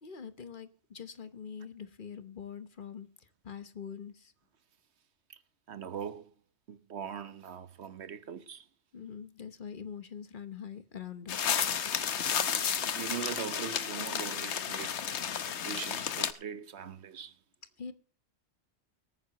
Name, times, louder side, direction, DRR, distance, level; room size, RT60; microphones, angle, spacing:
voice 1, 0.0-4.3 8.9-11.8 17.8-17.9, left 7 dB, 50° left, 1.1 m, -44 dB
voice 2, 5.7-6.3 6.7-8.6 12.2-12.4 12.6-15.2 15.6-17.3, right 7 dB, 80° right, 1.3 m, -41 dB
sound 1, 11.3-16.3, left 8 dB, 85° left, 1.2 m, -32 dB
24.0 x 9.5 x 2.9 m
omnidirectional pair, 1.1 m